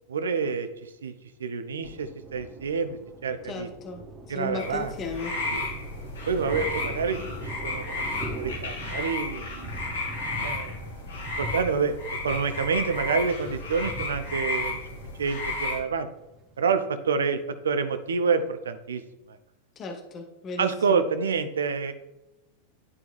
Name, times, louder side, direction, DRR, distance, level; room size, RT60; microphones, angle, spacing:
voice 1, 0.1-1.1 1.4-3.7 4.3-4.9 5.5-5.7 6.3-8.1 8.4-9.7 10.3-10.9 11.4-14.8 15.2-16.1 16.6-19.0 19.3-19.4 20.6-21.9, right 5 dB, 65° right, 11 dB, 0.6 m, -28 dB
Thunder, 1.8-16.6, right 1 dB, 25° right, 1.3 m, -42 dB
voice 2, 3.5-4.0 4.3-5.4 19.8-21.0, left 3 dB, 30° left, 4 dB, 0.9 m, -35 dB
sound 1, 4.6-15.8, left 2 dB, 65° left, 1.8 m, -33 dB
11.0 x 4.6 x 2.5 m, 0.92 s
figure-of-eight pair, 90°, 0 cm